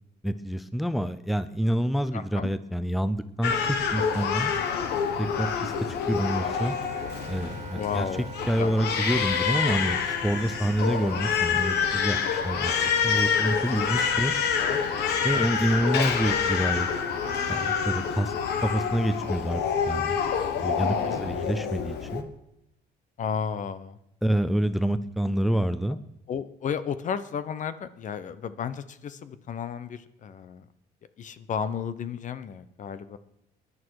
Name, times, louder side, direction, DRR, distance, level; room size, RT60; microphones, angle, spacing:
voice 1, 0.2-4.5 5.2-6.8 7.3-8.1 8.5-12.7 13.0-14.3 15.2-16.9 17.5-18.3 18.6-19.6 19.9-20.2 20.6-22.3 24.2-26.0, right 1 dB, ahead, 13 dB, 0.6 m, -27 dB
voice 2, 2.1-2.5 7.7-8.3 8.6-8.7 13.7-14.8 15.3-15.5 20.8-21.2 23.2-24.0 26.3-30.7 31.2-33.2, left 7 dB, 50° left, 13 dB, 0.9 m, -33 dB
Crying sobbing, 3.4-22.2, left 7 dB, 80° left, 1.5 m, -27 dB
Wind instrument woodwind instrument, 6.2-18.1, right 6 dB, 45° right, 1.6 m, -43 dB
20.5 x 11.0 x 4.8 m, 0.82 s
cardioid pair, 110°, 17 cm